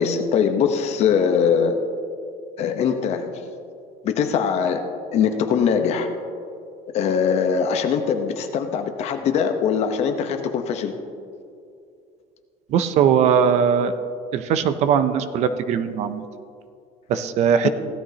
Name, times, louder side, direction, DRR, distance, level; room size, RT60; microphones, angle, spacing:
voice 1, 0.0-1.8 2.6-3.3 4.0-4.8 5.1-6.1 6.9-10.9 17.6-17.7, left 7 dB, 45° left, 7 dB, 0.9 m, -21 dB
voice 2, 12.7-13.9 14.3-16.2 17.1-17.7, right 7 dB, 45° right, 11 dB, 0.5 m, -20 dB
16.5 x 12.5 x 2.9 m, 2.4 s
cardioid pair, 165°, 15 cm